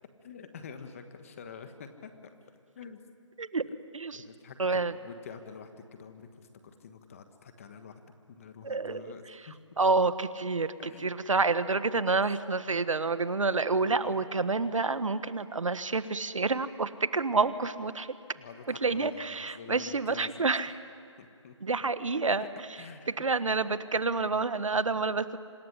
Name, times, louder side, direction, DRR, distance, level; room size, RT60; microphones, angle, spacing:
voice 1, 0.2-2.1 2.7-3.0 3.6-3.7 4.1-9.6 10.8-11.1 13.7-14.3 18.3-20.3 21.2-21.6 22.4-22.5 22.8-23.1, left 6 dB, 25° left, 8 dB, 1.5 m, -47 dB
voice 2, 4.6-4.9 8.6-9.1 9.8-10.7 11.0-18.1 18.8-20.7 21.6-22.5 23.2-25.4, right 4 dB, 80° right, 13 dB, 1.4 m, -28 dB
26.5 x 19.5 x 9.9 m, 2.6 s
figure-of-eight pair, 165°, 16 cm